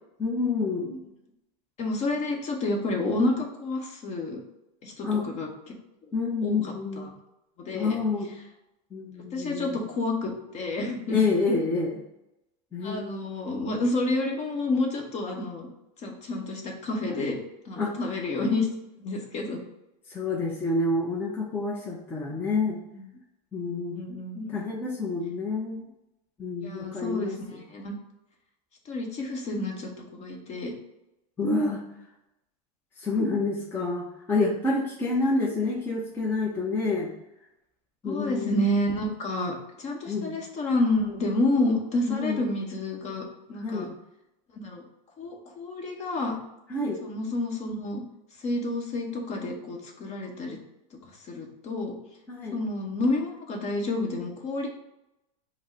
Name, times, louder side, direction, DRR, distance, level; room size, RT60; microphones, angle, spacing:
voice 1, 0.2-1.0 5.0-5.2 6.1-7.1 7.7-8.3 8.9-9.8 11.1-12.0 12.7-13.3 17.8-17.9 20.1-22.8 23.5-24.0 24.5-25.9 26.4-27.4 31.4-31.8 33.0-37.1 38.0-38.6 40.0-40.4 42.1-42.5 43.6-43.9 46.7-47.0 52.3-52.6, left 3 dB, 10° left, -4 dB, 0.5 m, -28 dB
voice 2, 1.8-4.4 4.8-5.7 6.4-7.1 7.6-8.0 9.3-11.2 12.8-15.7 16.0-17.4 17.6-18.7 19.0-19.6 22.9-23.0 23.9-24.5 26.6-28.0 28.8-30.7 38.0-43.9 44.5-44.8 45.2-46.4 47.0-48.0 48.4-50.6 50.9-51.0 51.2-51.9 52.5-54.7, left 2 dB, 35° left, 1 dB, 1.0 m, -29 dB
5.2 x 2.0 x 4.6 m, 0.90 s
supercardioid pair, 140°, 20 cm